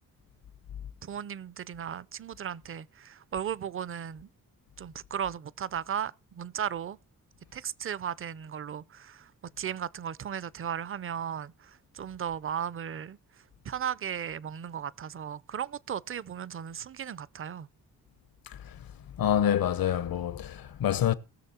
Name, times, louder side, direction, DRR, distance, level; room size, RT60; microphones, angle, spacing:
voice 1, 1.0-4.3 4.8-7.0 7.5-9.3 9.6-13.2 13.6-17.7, right 8 dB, 35° right, 0.5 m, -36 dB
voice 2, 18.5-18.8 19.2-21.1, left 10 dB, 75° left, 1.0 m, -27 dB
19.0 x 6.5 x 4.3 m
cardioid pair, 90°, 36 cm